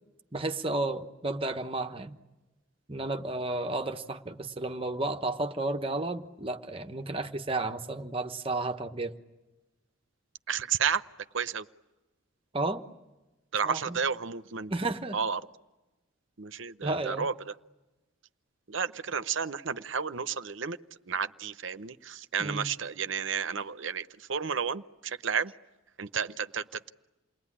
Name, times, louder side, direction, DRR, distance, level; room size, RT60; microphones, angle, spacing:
voice 1, 0.3-2.2 2.9-9.1 12.5-12.8 13.6-14.0 14.7-15.2 16.8-17.3 22.4-22.7, right 2 dB, 25° right, 6 dB, 1.1 m, -32 dB
voice 2, 10.5-11.0 11.3-11.6 13.5-14.7 15.1-15.4 16.4-17.3 18.7-20.8 21.1-25.5 26.0-26.9, right 6 dB, 65° right, 12 dB, 0.8 m, -32 dB
28.5 x 21.0 x 9.9 m, 1.1 s
head